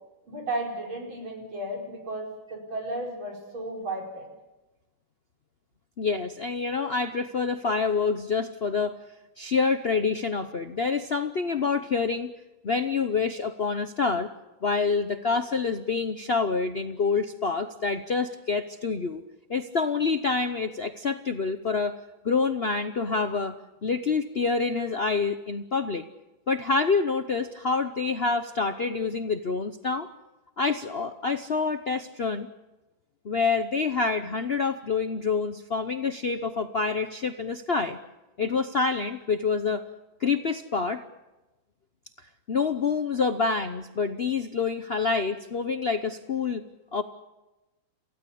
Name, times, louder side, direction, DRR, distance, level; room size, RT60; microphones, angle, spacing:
voice 1, 0.3-4.3, right 1 dB, 80° right, 0 dB, 5.5 m, -34 dB
voice 2, 6.0-9.0 9.4-12.3 12.6-14.3 14.6-19.2 19.5-22.0 22.2-23.6 23.8-26.0 26.5-30.1 30.6-32.5 33.2-38.0 38.4-39.8 40.2-41.0 42.5-46.7 46.9-47.0, left 4 dB, 50° left, 8 dB, 0.7 m, -27 dB
28.5 x 16.5 x 8.6 m, 1.1 s
omnidirectional pair, 2.2 m